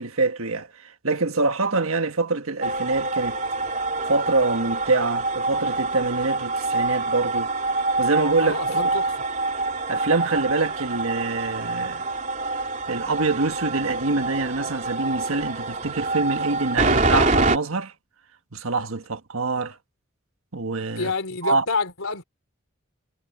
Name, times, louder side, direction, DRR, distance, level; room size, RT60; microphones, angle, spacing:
voice 1, 0.0-3.4 4.1-7.5 8.0-8.8 9.9-12.0 12.9-17.9 18.5-19.8 20.5-21.1 21.4-21.6, right 3 dB, 85° right, 1.5 m, -25 dB
sound 1, 2.6-17.6, right 3 dB, 35° right, 3.9 m, -26 dB
voice 2, 8.4-9.1 20.9-22.2, left 4 dB, 85° left, 3.4 m, -28 dB
head